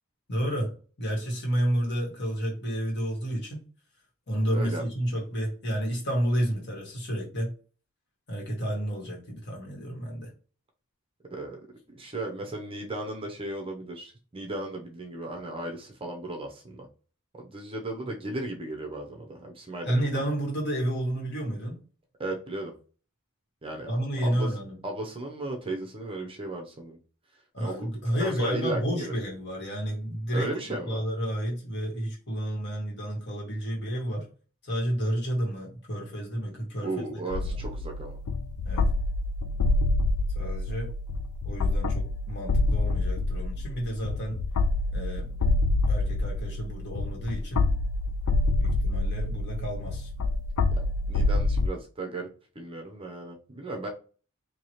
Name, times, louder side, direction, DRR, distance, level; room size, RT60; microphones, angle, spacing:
voice 1, 0.3-3.6 4.3-7.5 8.3-10.3 19.8-21.8 23.9-24.8 27.5-34.3 34.6-37.6 38.6-38.9 40.4-40.9 41.4-44.4 44.9-45.3 45.9-47.6 48.6-50.1, equal, 50° left, -1 dB, 1.7 m, -31 dB
voice 2, 4.5-4.8 11.3-11.6 11.9-16.9 17.3-20.1 22.2-22.7 23.6-23.9 24.2-24.5 24.8-27.0 27.6-27.9 28.2-29.1 30.3-31.0 36.8-38.2 50.7-52.3 52.5-53.9, right 2 dB, 25° right, 2 dB, 0.7 m, -35 dB
sound 1, 37.3-51.7, left 2 dB, 70° left, 0.4 m, -27 dB
4.7 x 2.8 x 3.0 m, 0.37 s
head